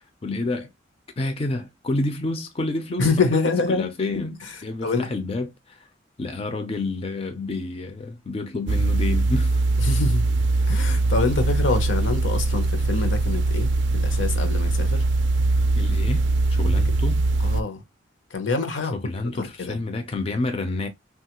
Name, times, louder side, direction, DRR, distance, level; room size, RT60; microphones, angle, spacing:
voice 1, 0.2-0.7 1.2-5.9 6.2-9.6 15.8-17.2 18.9-20.9, left 2 dB, 30° left, 0.4 m, -29 dB
voice 2, 3.0-3.9 4.8-5.1 9.8-10.3 10.6-15.0 17.4-17.8 18.3-19.0 19.3-19.8, left 3 dB, 75° left, 0.7 m, -25 dB
sound 1, 8.7-17.6, right 2 dB, 65° right, 0.4 m, -21 dB
3.0 x 2.3 x 2.9 m
head